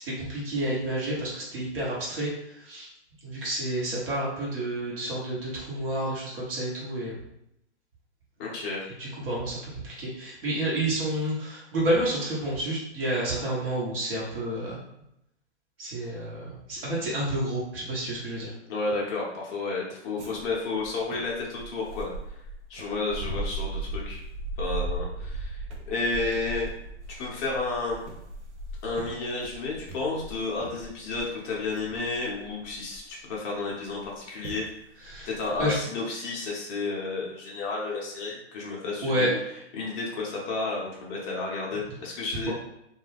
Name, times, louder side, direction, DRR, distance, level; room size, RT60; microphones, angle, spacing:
voice 1, 0.0-2.9 3.2-7.1 9.0-9.6 9.8-14.8 15.8-18.5 35.0-35.3 35.6-35.7 39.0-39.3 42.5-42.6, right 1 dB, 50° right, -6 dB, 1.1 m, -30 dB
voice 2, 8.4-8.8 18.7-22.1 22.7-24.2 24.6-26.7 27.2-28.0 28.8-34.7 35.3-39.4 39.7-42.5, left 3 dB, 20° left, -4 dB, 0.6 m, -31 dB
sound 1, 20.2-33.3 34.0-34.2 34.4-34.7 35.0-35.7, right 2 dB, 75° right, 0.7 m, -37 dB
2.3 x 2.2 x 3.3 m, 0.79 s
hypercardioid pair, 135°, 35 cm